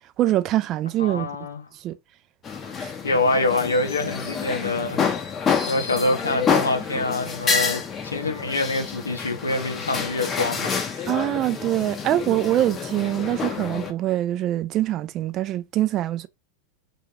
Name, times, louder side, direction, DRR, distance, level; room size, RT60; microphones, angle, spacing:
voice 1, 0.2-1.3 1.8-2.0 2.8-2.9 11.1-16.3, right 14 dB, 40° right, 0.3 m, -24 dB
voice 2, 1.0-1.6 3.0-5.3 5.7-11.1, left 2 dB, 85° left, 0.7 m, -25 dB
sound 1, 2.4-13.9, left 6 dB, 25° left, 0.6 m, -28 dB
2.5 x 2.4 x 3.1 m
figure-of-eight pair, 90°, 0 cm